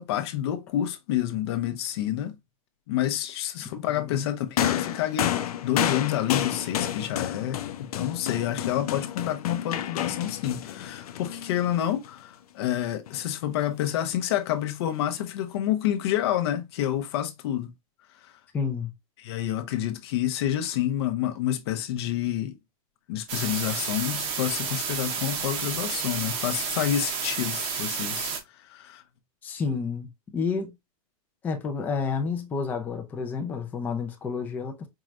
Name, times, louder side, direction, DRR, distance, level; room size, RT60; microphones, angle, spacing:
voice 1, 0.0-2.3 2.9-5.3 5.6-7.6 7.9-17.7 18.2-18.3 19.2-22.6 23.1-29.0, left 11 dB, 45° left, 0.7 m, -28 dB
voice 2, 3.9-4.3 18.5-18.9 29.4-30.7 31.4-34.9, left 5 dB, 10° left, 0.4 m, -30 dB
sound 1, 4.6-12.1 13.1-13.2, left 10 dB, 90° left, 0.6 m, -30 dB
sound 2, 23.3-28.4, right 6 dB, 30° right, 0.8 m, -31 dB
4.6 x 3.1 x 2.4 m
supercardioid pair, 170°, 18 cm